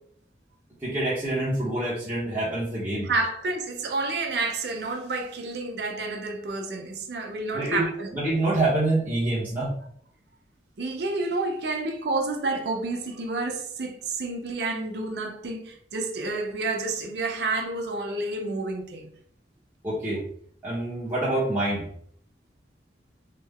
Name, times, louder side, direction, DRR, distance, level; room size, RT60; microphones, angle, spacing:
voice 1, 0.8-3.1 7.5-9.7 19.8-20.2 20.6-21.9, right 2 dB, 10° right, 0.9 m, -26 dB
voice 2, 3.0-8.1 10.8-19.1, right 3 dB, 65° right, 0.5 m, -29 dB
3.3 x 2.1 x 3.5 m
head